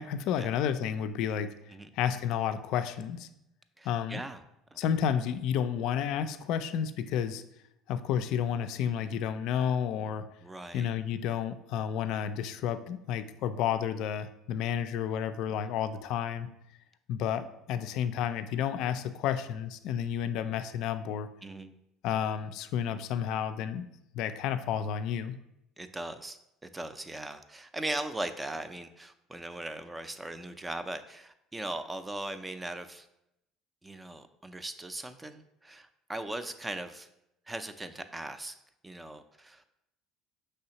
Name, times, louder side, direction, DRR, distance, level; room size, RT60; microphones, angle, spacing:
voice 1, 0.0-1.5 1.9-3.3 3.8-4.2 4.8-7.4 7.9-10.3 10.7-16.5 17.1-21.3 22.0-23.9 24.1-25.4, left 8 dB, 70° left, 10 dB, 0.3 m, -31 dB
voice 2, 3.8-4.4 4.7-4.8 10.4-10.9 21.4-21.8 25.8-33.1 33.8-37.1 37.5-38.6 38.8-39.7, right 1 dB, 15° right, 10 dB, 0.4 m, -39 dB
5.4 x 3.3 x 2.9 m, 0.82 s
supercardioid pair, 90°, 0 cm